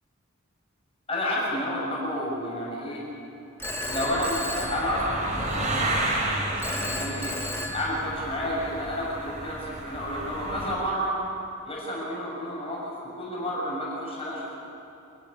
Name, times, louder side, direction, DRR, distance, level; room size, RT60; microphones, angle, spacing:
voice 1, 1.1-3.0 3.9-5.9 6.2-7.3 7.7-11.2 11.7-14.5, equal, 25° left, -5 dB, 6.4 m, -30 dB
Telephone, 3.6-5.6 6.6-8.5, left 1 dB, 10° left, 1.5 m, -35 dB
sound 1, 3.6-10.7, right 1 dB, 35° right, 4.1 m, -32 dB
28.0 x 13.0 x 9.8 m, 2.9 s
head